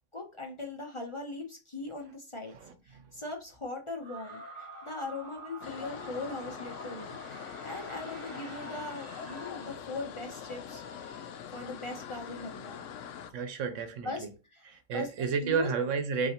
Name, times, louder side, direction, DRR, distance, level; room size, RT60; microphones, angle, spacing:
voice 1, 0.1-2.5 2.8-12.8 14.0-14.2 14.5-14.7 14.9-15.7, left 2 dB, 30° left, 0.7 m, -40 dB
voice 2, 2.5-3.2 13.3-14.3 14.7-16.3, right 5 dB, 85° right, 1.1 m, -32 dB
sound 1, 4.0-10.4, right 1 dB, 35° right, 1.0 m, -47 dB
sound 2, 5.6-13.3, left 8 dB, 80° left, 0.9 m, -43 dB
5.4 x 2.8 x 2.9 m
omnidirectional pair, 1.3 m